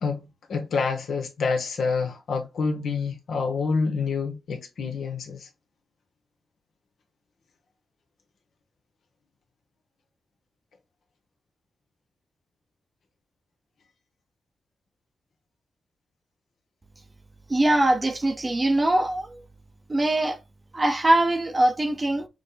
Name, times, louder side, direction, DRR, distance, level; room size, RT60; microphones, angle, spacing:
voice 1, 0.0-5.5, left 4 dB, 75° left, 1.0 m, -27 dB
voice 2, 17.5-19.4 19.9-20.4 20.7-22.3, right 1 dB, 30° right, 0.7 m, -22 dB
6.2 x 2.1 x 3.9 m
cardioid pair, 75°, 0 cm